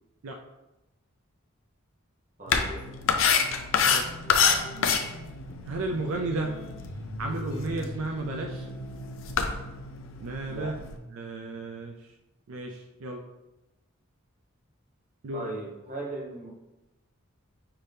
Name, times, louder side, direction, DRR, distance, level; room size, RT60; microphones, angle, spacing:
voice 1, 2.4-2.8 10.5-10.8 15.3-16.5, right 2 dB, 35° right, -1 dB, 0.9 m, -37 dB
sound 1, 2.5-11.0, left 6 dB, 65° left, 0.4 m, -29 dB
sound 2, 2.7-9.7, equal, 30° left, 1.6 m, -42 dB
voice 2, 5.7-6.5 7.2-8.7 10.2-10.8 11.1-11.9 12.5-13.2 15.2-15.5, right 2 dB, 75° right, 2 dB, 0.4 m, -33 dB
5.8 x 2.7 x 3.3 m, 0.99 s
head